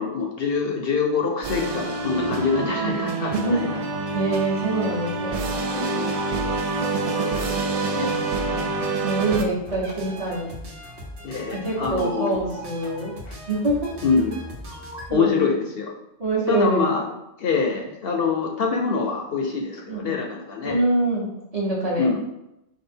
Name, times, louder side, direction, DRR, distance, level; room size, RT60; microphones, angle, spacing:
voice 1, 0.0-3.8 5.7-6.4 7.2-8.1 11.2-12.4 13.3-13.4 14.0-14.3 15.1-15.9 16.5-17.0 17.4-20.8 22.0-22.2, left 5 dB, 65° left, 2 dB, 0.7 m, -25 dB
sound 1, 1.4-9.4, right 3 dB, 60° right, 0.4 m, -26 dB
voice 2, 2.8-3.7 4.1-5.5 8.0-10.6 11.5-13.2 13.5-13.9 15.1-15.5 16.2-16.8 19.9-20.1 20.6-22.1, right 2 dB, 35° right, -5 dB, 1.1 m, -25 dB
sound 2, 9.7-15.2, right 1 dB, 75° right, 1.3 m, -38 dB
4.8 x 2.4 x 4.3 m, 0.86 s
omnidirectional pair, 1.2 m